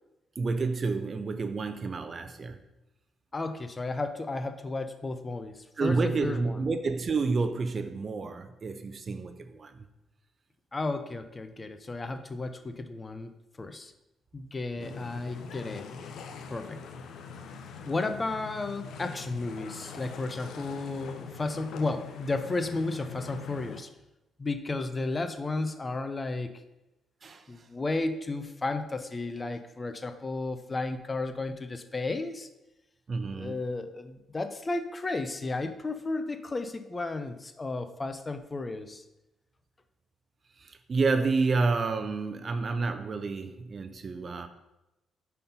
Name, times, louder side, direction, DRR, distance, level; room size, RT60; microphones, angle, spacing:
voice 1, 0.4-2.6 5.8-9.9 14.8-15.0 27.2-27.4 33.1-33.6 40.6-44.5, right 4 dB, 40° right, 9 dB, 0.6 m, -29 dB
voice 2, 3.3-6.6 10.7-13.3 13.6-13.9 14.3-15.9 16.5-16.8 17.9-23.9 24.4-26.6 27.5-32.5 33.4-39.0, left 3 dB, 25° left, 9 dB, 0.5 m, -33 dB
sound 1, 14.8-23.8, left 5 dB, 70° left, 0.6 m, -43 dB
5.4 x 4.3 x 5.3 m, 0.94 s
cardioid pair, 90°, 0 cm